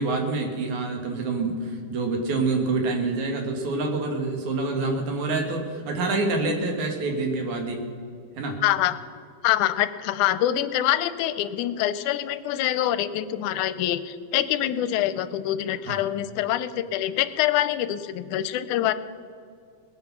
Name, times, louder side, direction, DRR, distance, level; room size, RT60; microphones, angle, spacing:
voice 1, 0.0-7.8 8.4-8.6 15.9-16.0, right 3 dB, 70° right, 3 dB, 3.1 m, -27 dB
voice 2, 8.6-9.0 9.4-18.9, left 12 dB, 85° left, 13 dB, 2.1 m, -25 dB
19.5 x 8.5 x 6.0 m, 2.2 s
omnidirectional pair, 3.5 m